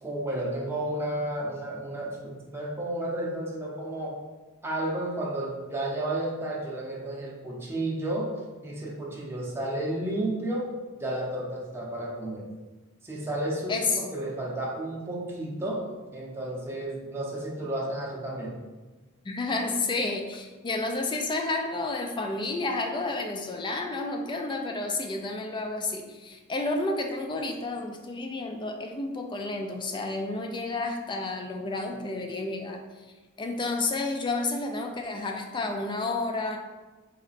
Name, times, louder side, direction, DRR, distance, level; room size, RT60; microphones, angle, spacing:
voice 1, 0.0-4.2 4.6-8.3 8.6-10.7 11.0-12.5 13.0-15.9 16.1-18.6, right 1 dB, 10° right, -4 dB, 0.6 m, -32 dB
voice 2, 19.2-33.0 33.4-36.6, left 2 dB, 20° left, 3 dB, 0.3 m, -31 dB
3.9 x 2.1 x 4.0 m, 1.3 s
head